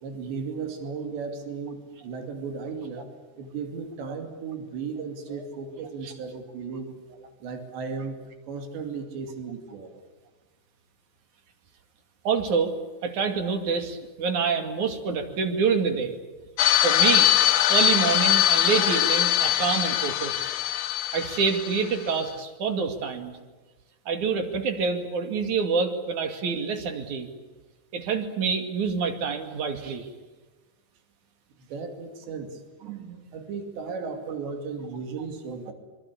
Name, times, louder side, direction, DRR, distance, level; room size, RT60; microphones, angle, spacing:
voice 1, 0.0-3.1 3.4-6.9 7.4-8.2 8.5-9.9 31.6-35.7, right 5 dB, 85° right, 5 dB, 5.0 m, -35 dB
voice 2, 12.3-12.7 13.0-16.2 16.8-17.3 17.7-20.5 21.1-23.4 24.1-27.3 27.9-30.1, right 5 dB, 50° right, 6 dB, 3.4 m, -26 dB
sound 1, 16.6-22.1, left 13 dB, 70° left, 2.9 m, -22 dB
25.5 x 25.0 x 8.6 m, 1.2 s
omnidirectional pair, 4.9 m